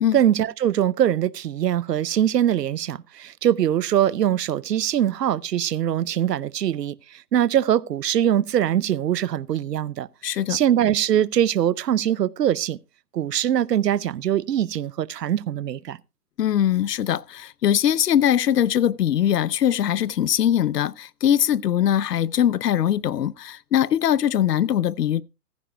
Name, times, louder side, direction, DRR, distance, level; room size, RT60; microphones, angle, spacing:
voice 1, 0.1-12.8 13.1-16.0, right 11 dB, 80° right, 0.8 m, -22 dB
voice 2, 10.2-10.6 16.4-25.2, left 10 dB, 80° left, 0.8 m, -21 dB
15.0 x 14.5 x 2.2 m
hypercardioid pair, 130°, 47 cm